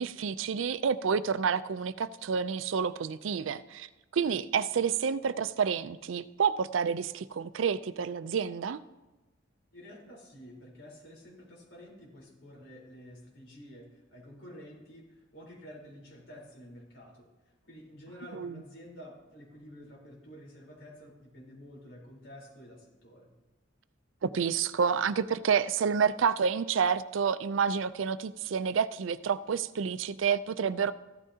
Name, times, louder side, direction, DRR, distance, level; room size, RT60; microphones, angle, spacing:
voice 1, 0.0-8.8 18.3-18.6 24.2-30.9, right 6 dB, 80° right, 15 dB, 0.4 m, -29 dB
voice 2, 9.7-17.3 17.6-23.3, equal, 80° left, -2 dB, 3.9 m, -50 dB
15.0 x 12.5 x 2.8 m, 1.1 s
head